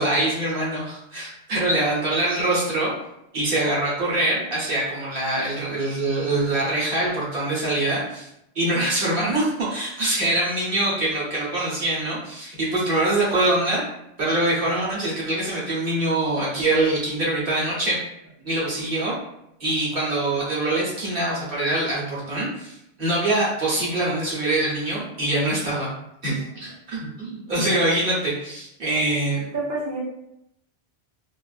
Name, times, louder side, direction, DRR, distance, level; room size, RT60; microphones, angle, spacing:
voice 1, 0.0-2.9 3.3-8.3 8.5-13.8 14.2-18.0 18.4-19.1 19.6-25.9 26.2-29.4, right 2 dB, 60° right, -6 dB, 1.0 m, -24 dB
voice 2, 29.2-30.0, right 2 dB, 20° right, -7 dB, 0.7 m, -30 dB
2.4 x 2.4 x 2.3 m, 0.80 s
omnidirectional pair, 1.1 m